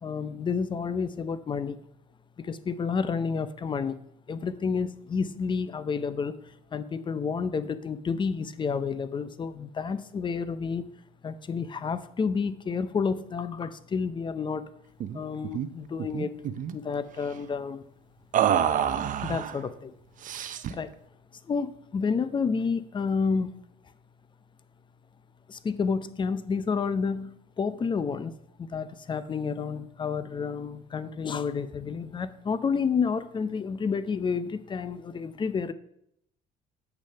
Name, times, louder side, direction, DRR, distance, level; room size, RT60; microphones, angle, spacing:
voice 1, 0.0-1.8 2.4-4.0 4.3-6.3 6.7-10.8 11.2-14.6 15.1-16.3 16.7-17.8 19.2-19.9 20.4-20.9 21.5-23.5 25.5-28.3 28.6-35.7, left 5 dB, 30° left, 14 dB, 0.6 m, -30 dB
sound 1, 15.0-15.2 15.4-15.7 16.0-16.7 18.3-19.6 20.2-20.8, right 9 dB, 50° right, 0.6 m, -27 dB
8.4 x 6.3 x 5.5 m, 0.75 s
cardioid pair, 110°, 17 cm